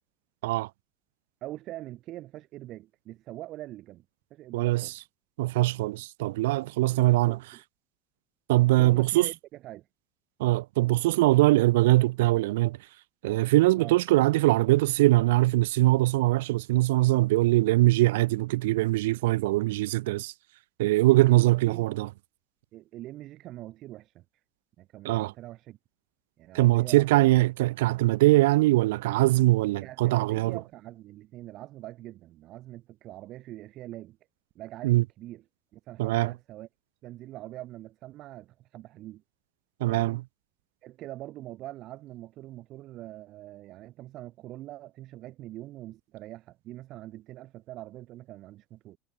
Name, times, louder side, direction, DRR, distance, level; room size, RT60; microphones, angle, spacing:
voice 1, 1.4-4.0 4.3-4.9 6.9-7.6 8.6-9.9 13.8-14.0 21.1-21.8 22.7-24.2 24.8-25.8 26.4-27.1 29.8-34.2 34.5-35.4 35.7-36.7 37.0-39.2 39.8-40.2 40.8-49.0, right 15 dB, 50° right, 5.1 m, -43 dB
voice 2, 4.5-4.9 5.4-7.4 8.5-9.3 10.4-12.8 13.2-20.3 20.8-22.1 25.0-25.3 26.5-30.6 34.8-35.0 36.0-36.3 39.8-40.2, right 18 dB, 65° right, 0.4 m, -22 dB
figure-of-eight pair, 70°, 0 cm